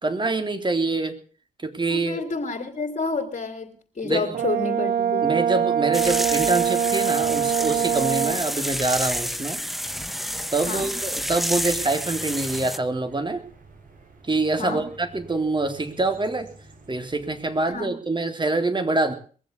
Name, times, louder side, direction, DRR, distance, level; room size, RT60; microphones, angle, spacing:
voice 1, 0.0-1.2 1.6-2.2 4.0-4.4 5.2-9.6 10.5-13.4 14.3-16.5 16.9-19.1, right 2 dB, 30° right, 7 dB, 3.7 m, -25 dB
voice 2, 1.9-5.3 10.6-10.9 14.6-14.8 17.7-17.9, left 4 dB, 50° left, 3 dB, 3.6 m, -29 dB
Brass instrument, 4.3-8.4, right 9 dB, 80° right, 1.2 m, -23 dB
sound 1, 5.9-12.8, equal, ahead, 1.3 m, -29 dB
sound 2, 11.0-17.8, right 3 dB, 60° right, 5.7 m, -50 dB
22.0 x 7.6 x 8.4 m, 0.42 s
supercardioid pair, 55°, 16 cm